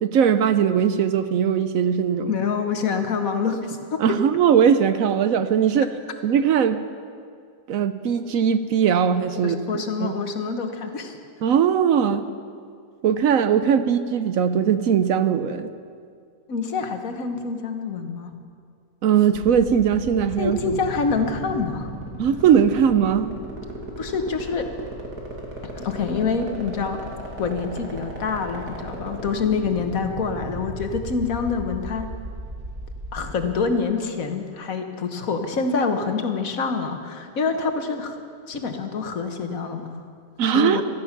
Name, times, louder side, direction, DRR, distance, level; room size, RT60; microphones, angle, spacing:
voice 1, 0.0-2.3 4.0-5.9 6.2-6.8 7.7-10.1 11.4-12.3 13.0-15.7 19.0-20.8 22.2-23.3 40.4-40.8, right 8 dB, 70° right, 11 dB, 1.0 m, -20 dB
voice 2, 2.3-4.2 9.4-11.2 16.5-18.3 20.4-21.9 24.0-24.7 25.8-27.1 27.4-32.1 33.1-38.2 38.5-40.0 40.4-40.8, left 5 dB, 65° left, 6 dB, 1.6 m, -26 dB
sound 1, 19.3-33.3, equal, 85° right, 2.8 m, -35 dB
16.5 x 13.5 x 5.9 m, 2.2 s
omnidirectional pair, 1.6 m